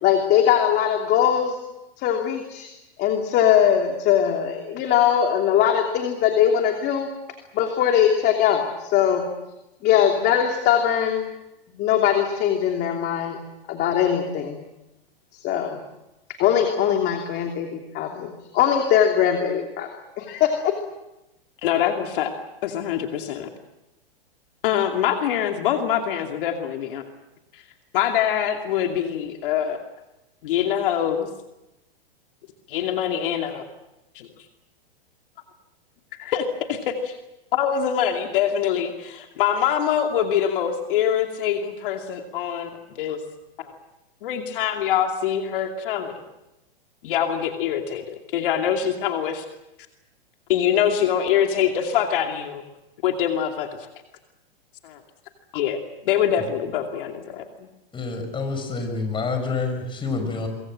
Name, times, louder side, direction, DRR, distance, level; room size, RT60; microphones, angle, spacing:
voice 1, 0.0-1.6 2.0-2.7 3.0-7.1 7.5-9.3 9.8-11.3 11.8-13.4 13.7-14.6 15.3-15.8 16.4-19.9 20.2-20.7, left 9 dB, 35° left, 3 dB, 3.0 m, -21 dB
voice 2, 21.6-22.3 22.6-23.5 24.6-27.0 27.5-27.6 27.9-29.8 30.4-31.3 32.7-33.6 34.1-34.3 36.2-37.1 37.5-42.7 43.0-43.2 43.6-43.7 44.2-46.2 47.0-48.0 48.3-49.4 50.5-52.6 53.0-53.9 54.8-55.0 55.5-55.8 56.1-57.4, left 9 dB, 60° left, 4 dB, 2.7 m, -24 dB
voice 3, 57.9-60.5, left 4 dB, 15° left, 5 dB, 6.1 m, -27 dB
25.0 x 23.5 x 7.7 m, 0.94 s
hypercardioid pair, 130°, 30 cm